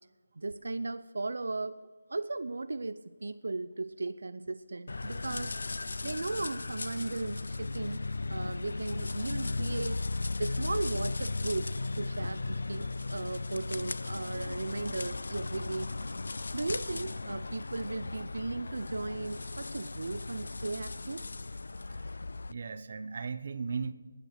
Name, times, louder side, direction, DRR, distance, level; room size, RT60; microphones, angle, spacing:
voice 1, 0.4-1.8 2.1-5.5 6.0-8.0 8.3-10.1 10.4-16.0 16.5-21.3, right 3 dB, 75° right, 13 dB, 0.5 m, -36 dB
sound 1, 4.9-22.5, left 3 dB, 70° left, 0.4 m, -36 dB
voice 2, 22.5-23.9, right 5 dB, 40° right, 11 dB, 0.7 m, -37 dB
12.0 x 9.0 x 6.6 m, 1.5 s
figure-of-eight pair, 170°, 0 cm